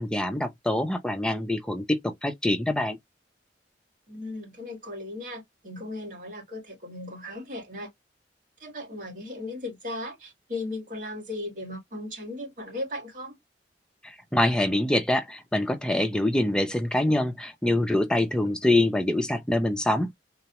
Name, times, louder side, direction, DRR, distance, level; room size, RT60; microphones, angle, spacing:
voice 1, 0.0-3.0 14.0-20.1, left 1 dB, 5° left, 0.4 m, -25 dB
voice 2, 4.1-7.9 8.6-13.4, left 2 dB, 50° right, 1.9 m, -37 dB
3.8 x 2.1 x 2.9 m
head